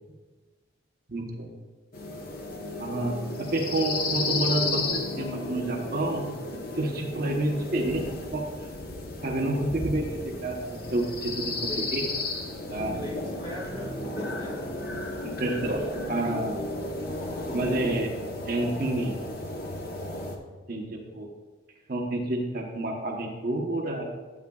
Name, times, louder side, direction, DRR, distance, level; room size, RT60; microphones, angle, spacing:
voice 1, 1.1-1.5 2.8-6.3 6.8-8.0 8.3-8.5 9.2-12.0 12.7-13.0 15.2-16.6 17.5-18.1 18.5-19.2 20.7-21.3 21.9-24.0, right 1 dB, 50° right, 1 dB, 1.0 m, -29 dB
sound 1, 1.9-20.4, left 2 dB, 50° left, 1.0 m, -33 dB
voice 2, 11.5-12.1 12.7-14.8, equal, 25° left, -2 dB, 2.0 m, -40 dB
12.5 x 8.3 x 2.4 m, 1.3 s
head